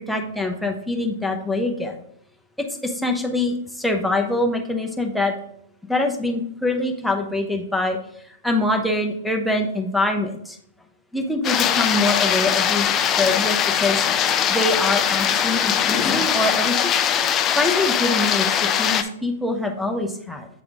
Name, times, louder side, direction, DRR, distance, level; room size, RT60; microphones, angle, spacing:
voice 1, 0.1-2.0 2.8-5.3 5.9-8.0 8.4-10.6 11.1-14.1 14.5-17.0 17.6-20.5, left 2 dB, ahead, 1 dB, 0.8 m, -24 dB
sound 1, 11.4-19.0, left 9 dB, 25° left, 0.4 m, -21 dB
8.0 x 3.5 x 3.6 m, 0.70 s
hypercardioid pair, 115°, 0 cm